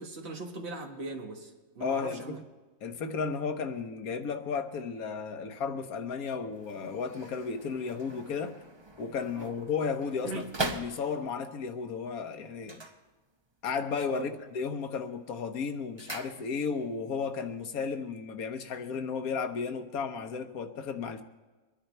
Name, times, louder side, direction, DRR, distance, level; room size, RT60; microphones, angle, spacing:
voice 1, 0.0-2.4 9.3-9.6 10.2-10.5 14.1-14.3, right 3 dB, 50° right, 1 dB, 1.8 m, -39 dB
voice 2, 1.8-2.4 2.8-8.6 9.0-12.8 13.6-21.2, left 5 dB, 80° left, 7 dB, 1.4 m, -34 dB
sound 1, 6.5-11.5 12.5-13.7 14.0-14.5 14.8-16.9 17.2-17.3, right 3 dB, 25° right, 0.8 m, -41 dB
23.5 x 10.0 x 4.4 m, 1.2 s
omnidirectional pair, 1.5 m